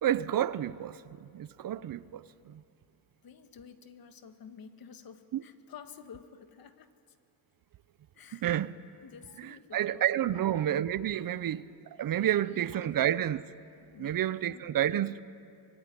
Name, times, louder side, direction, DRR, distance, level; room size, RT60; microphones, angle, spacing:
voice 1, 0.0-2.6 5.3-5.4 8.3-8.8 9.4-11.6 11.9-13.4 14.0-15.2, right 11 dB, 50° right, 0.7 m, -30 dB
voice 2, 3.2-7.2 8.1-8.5 9.0-10.5 11.2-11.5 12.1-13.1 13.9-14.7, left 7 dB, 55° left, 1.6 m, -51 dB
24.5 x 21.5 x 9.7 m
cardioid pair, 135°, 43 cm